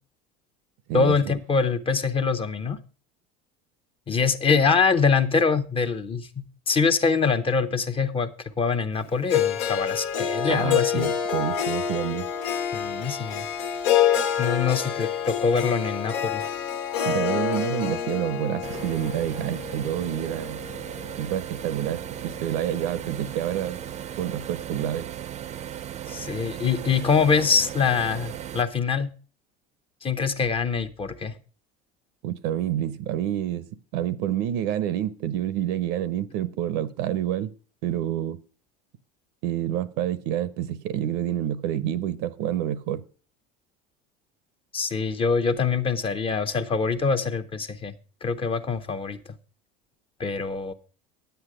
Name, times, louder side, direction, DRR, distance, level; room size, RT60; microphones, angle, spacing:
voice 1, 0.9-2.8 4.1-11.1 12.7-13.5 14.4-16.4 26.1-29.1 30.0-31.4 44.7-47.9 48.2-49.2 50.2-50.7, left 5 dB, 25° left, 0.9 m, -24 dB
Harp, 9.3-21.4, left 9 dB, 75° left, 1.4 m, -27 dB
voice 2, 10.5-12.3 17.0-20.6 21.2-23.8 24.2-25.1 32.2-37.5 37.8-38.4 39.4-43.0, right 11 dB, 70° right, 0.8 m, -28 dB
sound 1, 18.6-28.6, right 10 dB, 35° right, 0.6 m, -36 dB
9.8 x 8.1 x 4.9 m
supercardioid pair, 105°, 21 cm